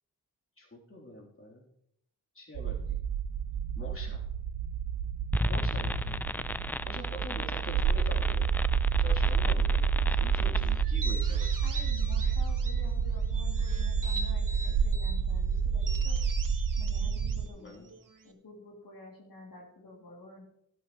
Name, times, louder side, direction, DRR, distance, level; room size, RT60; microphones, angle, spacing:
voice 1, 0.6-1.6 2.3-3.0 3.7-4.2 5.4-6.2 6.8-8.5 9.0-11.5 17.6-17.9, left 1 dB, 35° left, -2 dB, 3.2 m, -45 dB
sound 1, 2.5-17.5, right 6 dB, 90° right, 0.6 m, -29 dB
sound 2, 5.3-10.8, left 1 dB, 5° left, 0.3 m, -34 dB
sound 3, 10.8-12.9 13.3-15.2 15.8-18.3, right 2 dB, 60° right, 1.5 m, -42 dB
voice 2, 11.6-16.2 16.8-17.9 18.2-20.4, left 2 dB, 70° left, -2 dB, 2.7 m, -50 dB
13.0 x 12.0 x 3.0 m, 0.72 s
cardioid pair, 60°, 36 cm